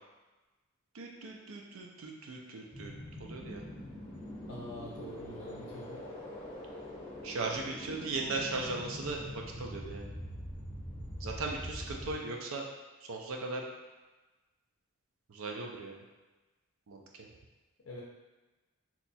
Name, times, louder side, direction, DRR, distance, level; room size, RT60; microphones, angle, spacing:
voice 1, 0.9-2.9 3.2-3.6 7.2-10.1 11.2-12.6 13.0-13.6 15.3-16.0 16.9-17.3, right 3 dB, 75° right, 1 dB, 0.5 m, -38 dB
sound 1, 2.7-12.1, equal, 25° left, 0.8 m, -44 dB
voice 2, 4.5-6.0 17.8-18.0, left 1 dB, 75° left, -4 dB, 0.5 m, -45 dB
2.9 x 2.2 x 4.0 m, 1.2 s
head